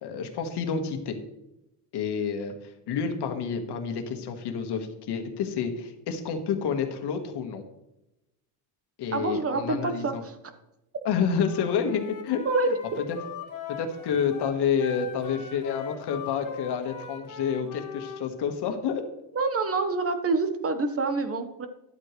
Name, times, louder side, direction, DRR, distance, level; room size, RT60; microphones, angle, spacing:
voice 1, 0.0-1.2 1.9-7.6 9.0-10.2 11.0-13.2 13.7-19.0, left 6 dB, 65° left, 5 dB, 1.6 m, -29 dB
voice 2, 9.1-10.3 12.4-13.0 19.3-21.7, right 3 dB, 30° right, 8 dB, 1.2 m, -27 dB
Wind instrument woodwind instrument, 11.4-18.2, left 6 dB, 45° left, 1.9 m, -40 dB
11.5 x 8.1 x 3.2 m, 0.90 s
cardioid pair, 105°, 43 cm